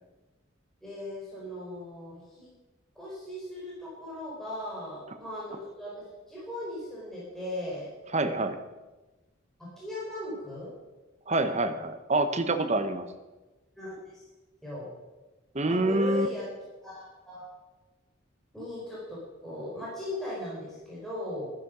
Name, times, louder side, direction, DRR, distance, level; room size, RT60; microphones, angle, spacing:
voice 1, 0.8-2.5 3.0-7.9 9.8-10.7 13.8-14.3 14.6-14.9 15.7-16.5 16.8-17.0 17.2-17.4 18.5-21.5, left 1 dB, ahead, -8 dB, 4.2 m, -38 dB
voice 2, 8.1-8.6 11.3-13.1 15.5-16.3, right 2 dB, 35° right, 8 dB, 1.0 m, -26 dB
12.0 x 10.5 x 6.2 m, 1.1 s
head